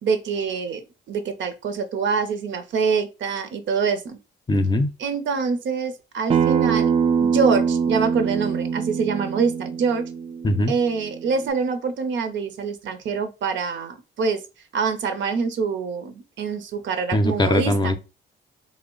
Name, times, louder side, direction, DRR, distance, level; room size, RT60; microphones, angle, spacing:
voice 1, 0.0-4.2 5.0-6.9 7.2-10.1 10.7-14.4 14.7-18.0, right 5 dB, 70° right, 0.7 m, -25 dB
voice 2, 4.5-4.9 10.4-10.7 17.1-18.0, left 1 dB, 20° left, 0.5 m, -20 dB
Acoustic guitar, 6.3-11.5, right 7 dB, 30° right, 0.3 m, -24 dB
3.2 x 2.1 x 3.7 m
cardioid pair, 90°, 20 cm